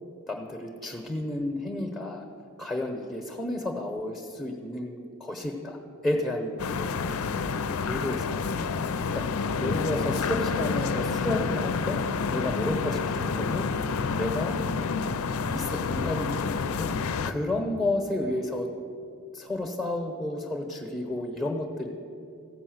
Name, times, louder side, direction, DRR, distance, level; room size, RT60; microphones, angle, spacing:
voice 1, 0.3-2.3 2.6-6.7 7.5-8.7 9.1-12.0 12.3-14.5 15.5-18.7 19.3-21.9, left 1 dB, 5° left, 1 dB, 0.8 m, -32 dB
sound 1, 6.6-17.3, left 5 dB, 75° left, 0.4 m, -29 dB
14.5 x 5.5 x 7.8 m, 2.5 s
head